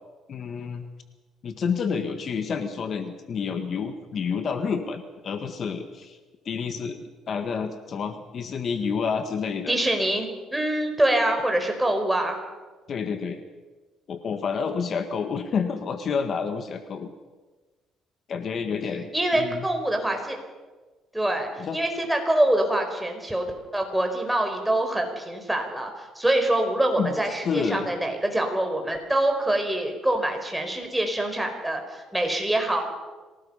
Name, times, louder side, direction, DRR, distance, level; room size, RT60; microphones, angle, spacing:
voice 1, 0.3-0.9 1.4-6.2 6.5-7.0 7.3-9.8 12.9-13.4 14.1-17.1 18.3-19.7 21.6-21.8 27.0-27.1 27.4-27.9, left 6 dB, 50° left, 7 dB, 1.7 m, -29 dB
voice 2, 9.7-12.4 19.1-20.4 21.1-32.8, right 1 dB, 5° right, 4 dB, 4.7 m, -25 dB
26.5 x 18.5 x 5.7 m, 1.3 s
cardioid pair, 100°, 0 cm